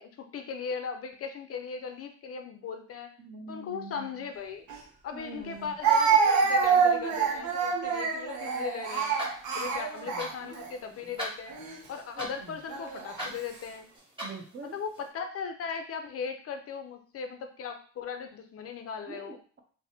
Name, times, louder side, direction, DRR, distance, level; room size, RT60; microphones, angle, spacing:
voice 1, 0.0-3.1 3.5-4.7 5.0-9.1 9.5-11.5 11.9-13.9 14.7-19.4, left 6 dB, 50° left, 6 dB, 0.5 m, -38 dB
voice 2, 3.2-4.3 5.1-5.7 9.6-9.8 10.1-10.3 12.1-12.6 14.2-14.8 19.1-19.6, right 3 dB, 35° right, 3 dB, 0.7 m, -44 dB
Speech, 4.7-4.8 5.8-10.7 11.5-11.8 12.7-13.3, right 6 dB, 75° right, 0.7 m, -26 dB
sound 1, 8.4-15.1, right 1 dB, 15° right, 1.4 m, -43 dB
3.3 x 2.1 x 2.7 m, 0.43 s
cardioid pair, 90°, 30 cm